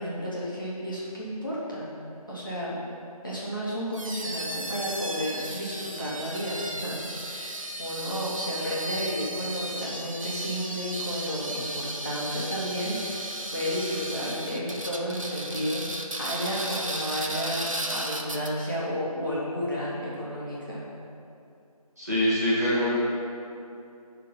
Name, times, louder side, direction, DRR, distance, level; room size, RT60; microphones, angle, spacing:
voice 1, 0.0-1.9 2.3-2.8 3.2-15.9 16.2-20.8, equal, 35° left, -9 dB, 1.7 m, -32 dB
sound 1, 3.9-18.7, right 1 dB, 55° right, 0.7 m, -35 dB
voice 2, 22.0-23.0, left 1 dB, 25° right, -11 dB, 1.8 m, -24 dB
11.0 x 3.8 x 5.6 m, 2.6 s
figure-of-eight pair, 175°, 20 cm